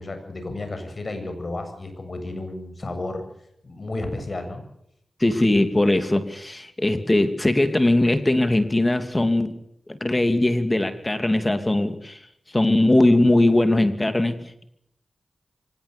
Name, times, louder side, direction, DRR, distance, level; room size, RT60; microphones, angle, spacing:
voice 1, 0.0-3.2 3.6-4.6, left 2 dB, 50° left, 7 dB, 8.0 m, -32 dB
voice 2, 5.2-9.6 9.9-12.2 12.5-14.6, left 1 dB, 25° left, 9 dB, 2.8 m, -20 dB
24.5 x 20.0 x 6.9 m, 0.74 s
cardioid pair, 55°, 0 cm